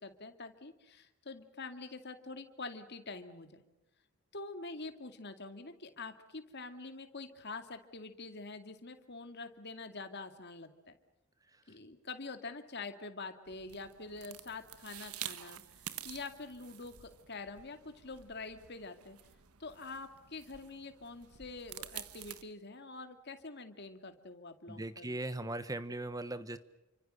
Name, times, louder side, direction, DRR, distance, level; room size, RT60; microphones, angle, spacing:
voice 1, 0.0-3.6 4.3-11.0 11.7-19.2 19.6-25.2, left 3 dB, 50° left, 8 dB, 2.4 m, -46 dB
sound 1, 13.5-22.4, right 11 dB, 85° right, 1.4 m, -49 dB
voice 2, 24.7-26.6, right 2 dB, 15° right, 13 dB, 1.1 m, -39 dB
29.5 x 25.5 x 6.6 m, 0.93 s
head